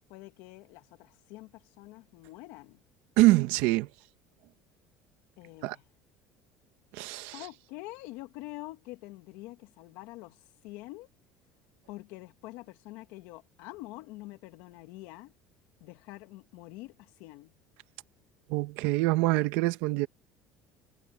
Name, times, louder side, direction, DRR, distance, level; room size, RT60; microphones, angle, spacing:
voice 1, 0.1-2.8 5.4-5.8 7.3-11.1 11.9-15.3 15.8-17.5, left 19 dB, 70° left, 2.1 m, -46 dB
voice 2, 3.2-3.9 5.6-5.8 6.9-7.4 18.5-20.1, right 19 dB, 75° right, 1.2 m, -25 dB
cardioid pair, 165°, 4 cm